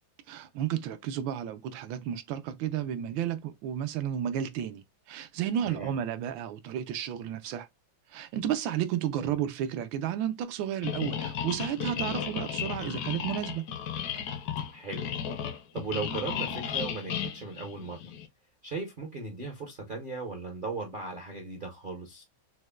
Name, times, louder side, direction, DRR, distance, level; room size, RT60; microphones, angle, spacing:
voice 1, 0.3-7.7 8.1-13.7, right 10 dB, 80° right, 1.3 m, -32 dB
voice 2, 5.6-5.9 9.2-9.3 14.7-15.0 15.7-18.1 18.6-22.2, right 3 dB, 50° right, 0.6 m, -37 dB
sound 1, 10.8-18.3, left 8 dB, 65° left, 1.0 m, -34 dB
6.2 x 2.1 x 2.2 m
omnidirectional pair, 2.2 m